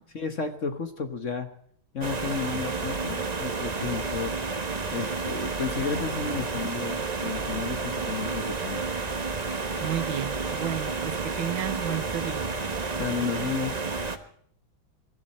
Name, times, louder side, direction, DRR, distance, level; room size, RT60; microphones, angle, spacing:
voice 1, 0.1-1.5 1.9-4.4 4.9-8.8 13.0-13.8, left 6 dB, 40° left, 1.4 m, -32 dB
sound 1, 2.0-14.2, right 4 dB, 30° right, 0.8 m, -31 dB
voice 2, 9.8-12.6, right 11 dB, 70° right, 1.7 m, -32 dB
22.5 x 14.0 x 4.3 m
omnidirectional pair, 2.3 m